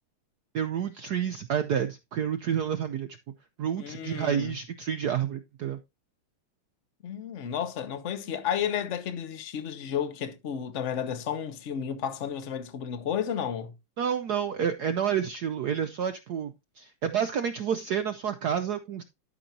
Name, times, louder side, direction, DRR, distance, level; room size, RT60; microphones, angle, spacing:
voice 1, 0.5-3.1 3.6-5.8 14.0-19.0, right 8 dB, 70° right, 0.9 m, -29 dB
voice 2, 3.8-4.5 7.0-13.7, left 8 dB, 45° left, 1.0 m, -32 dB
12.5 x 6.1 x 2.7 m
omnidirectional pair, 2.4 m